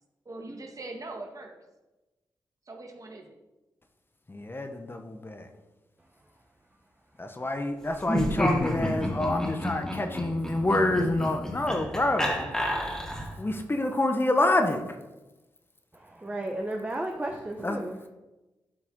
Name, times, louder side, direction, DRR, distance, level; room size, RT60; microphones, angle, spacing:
voice 1, 0.2-1.6 2.7-3.4, right 2 dB, 45° right, 3 dB, 1.6 m, -41 dB
voice 2, 4.3-5.5 7.2-12.5 13.4-14.8 17.6-17.8, left 2 dB, 30° left, 5 dB, 1.1 m, -27 dB
Laughter, 8.0-13.4, equal, 5° left, 2.4 m, -30 dB
voice 3, 15.9-18.1, right 1 dB, 20° right, 2 dB, 1.0 m, -34 dB
12.5 x 4.6 x 3.8 m, 1.1 s
supercardioid pair, 50°, 8 cm